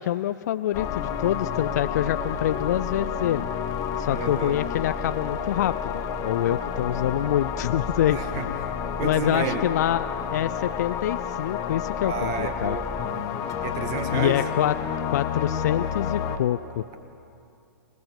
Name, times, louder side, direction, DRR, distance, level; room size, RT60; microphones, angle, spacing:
voice 1, 0.0-3.5 4.0-8.2 9.0-12.8 14.1-14.7 15.1-16.8, left 12 dB, 50° left, 13 dB, 0.5 m, -26 dB
sound 1, 0.7-16.4, left 7 dB, 30° left, 1.2 m, -30 dB
voice 2, 4.1-4.6 6.5-6.6 8.1-8.7 9.0-9.6 12.1-14.4, right 5 dB, 30° right, 7 dB, 2.0 m, -32 dB
26.0 x 18.5 x 6.9 m, 2.7 s
figure-of-eight pair, 110°, 12 cm